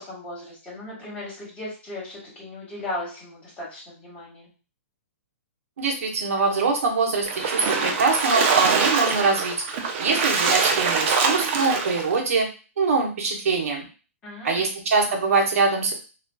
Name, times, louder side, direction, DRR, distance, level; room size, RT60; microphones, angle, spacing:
voice 1, 0.0-4.5 14.2-14.7, left 1 dB, 15° left, -6 dB, 1.4 m, -36 dB
voice 2, 5.8-9.5 10.0-12.5 12.8-13.8 14.4-15.9, right 4 dB, 70° right, 0 dB, 0.9 m, -23 dB
Splash splatter, 7.3-12.1, right 5 dB, 50° right, 0.5 m, -23 dB
2.4 x 2.3 x 2.2 m, 0.34 s
hypercardioid pair, 135°, 8 cm